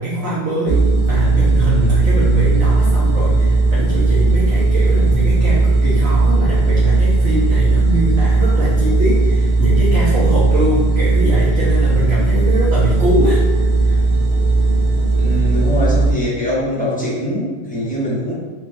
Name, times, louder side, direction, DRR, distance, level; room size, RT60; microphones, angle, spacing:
voice 1, 0.0-13.4 13.8-14.0, right 1 dB, 80° right, -8 dB, 1.0 m, -22 dB
refridgerator coils, 0.7-16.1, right 3 dB, 60° right, 0.6 m, -15 dB
voice 2, 15.2-18.3, equal, 10° left, -8 dB, 0.5 m, -22 dB
3.1 x 2.3 x 2.5 m, 1.3 s
omnidirectional pair, 1.2 m